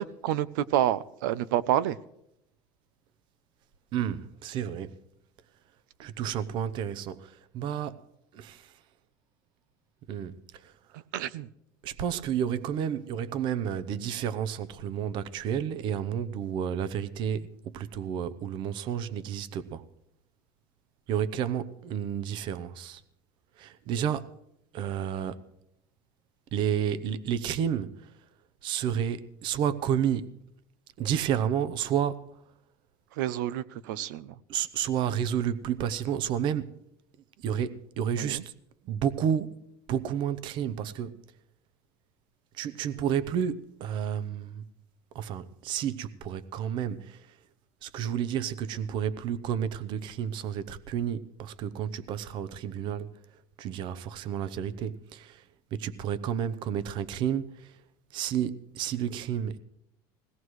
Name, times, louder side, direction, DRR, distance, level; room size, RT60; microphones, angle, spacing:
voice 1, 0.0-2.0 10.9-11.5 33.2-34.3 38.2-38.4, right 12 dB, 90° right, 0.6 m, -29 dB
voice 2, 3.9-5.0 6.0-8.1 8.3-8.7 10.1-10.7 11.8-19.8 21.1-23.0 23.6-24.3 24.7-25.4 26.5-28.1 28.6-30.3 31.0-32.2 34.5-36.8 37.4-38.5 38.9-39.5 39.9-41.2 42.6-44.6 45.1-47.3 47.8-53.1 53.6-55.4 55.7-57.7 58.1-59.6, right 9 dB, 55° right, 0.7 m, -31 dB
21.0 x 17.0 x 3.2 m
supercardioid pair, 130°, 10 cm